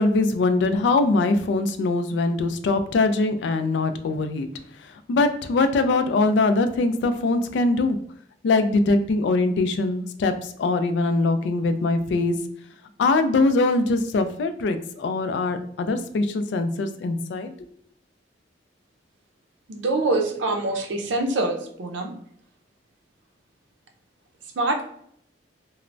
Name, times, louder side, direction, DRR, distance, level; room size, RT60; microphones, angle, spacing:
voice 1, 0.0-4.5 5.1-8.0 8.4-10.3 10.6-12.3 13.0-17.5, left 3 dB, 70° left, 9 dB, 0.3 m, -22 dB
voice 2, 19.7-22.1 24.6-24.8, right 2 dB, 85° right, 4 dB, 0.5 m, -25 dB
3.1 x 2.0 x 2.5 m, 0.67 s
head